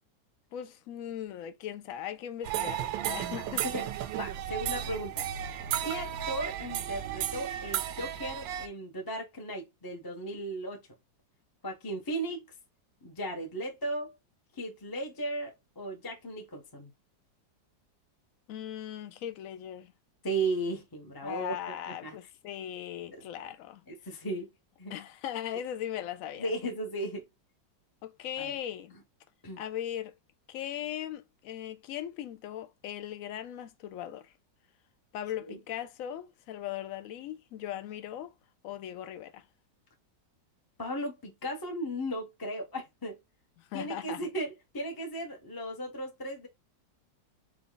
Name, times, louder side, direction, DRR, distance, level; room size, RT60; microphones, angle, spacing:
voice 1, 0.5-3.6 18.5-19.9 21.2-23.8 24.9-26.5 28.0-28.9 29.6-30.1 30.5-34.3 35.1-38.3 38.6-39.4 43.6-44.3, left 11 dB, 70° left, 0.8 m, -39 dB
sound 1, 2.4-8.7, right 11 dB, 85° right, 1.3 m, -34 dB
voice 2, 3.3-3.9 4.2-5.2 5.8-10.9 11.6-12.4 13.0-14.2 14.6-16.9 20.2-21.5 21.9-22.2 23.9-24.5 24.8-24.9 26.4-27.3 28.4-28.5 29.4-29.6 35.5-35.6 40.8-43.2 43.7-46.5, right 1 dB, 20° left, 0.5 m, -36 dB
4.8 x 2.3 x 3.8 m
omnidirectional pair, 2.0 m